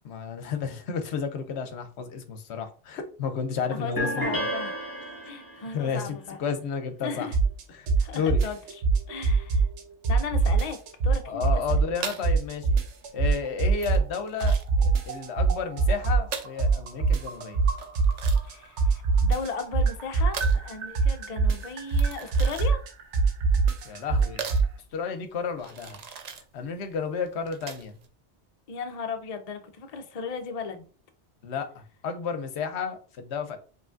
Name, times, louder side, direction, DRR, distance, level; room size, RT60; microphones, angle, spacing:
voice 1, 0.0-4.3 5.7-7.3 7.7-8.4 11.3-12.7 13.1-17.6 23.8-24.4 24.9-26.0 26.5-28.0 31.4-33.6, left 6 dB, 70° left, 0.9 m, -32 dB
voice 2, 3.7-4.8 5.2-6.4 7.0-7.4 8.0-9.7 10.1-10.8 11.0-11.6 18.4-22.8 28.7-30.8, left 5 dB, 50° left, 0.5 m, -36 dB
sound 1, 4.0-5.7, equal, 20° left, 1.4 m, -31 dB
sound 2, 7.3-7.6 7.9-9.8 10.0-12.0 12.2-14.2 14.4-18.5 18.8-24.7, right 4 dB, 80° right, 1.0 m, -22 dB
sound 3, 11.9-28.1, right 6 dB, 55° right, 0.4 m, -41 dB
4.8 x 3.1 x 2.5 m
omnidirectional pair, 1.2 m